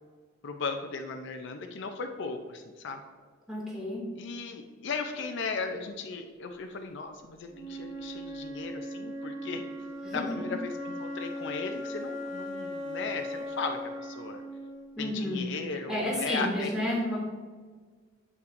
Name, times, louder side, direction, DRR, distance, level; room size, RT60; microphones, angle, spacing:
voice 1, 0.4-3.0 4.2-9.6 10.1-14.4 15.0-16.7, left 4 dB, 65° left, 5 dB, 0.5 m, -36 dB
voice 2, 3.5-4.1 10.0-10.5 14.9-15.5 15.9-17.2, left 1 dB, 5° right, -5 dB, 1.9 m, -31 dB
Wind instrument woodwind instrument, 7.5-15.5, left 1 dB, 65° right, 1.9 m, -39 dB
8.0 x 5.6 x 2.6 m, 1.5 s
head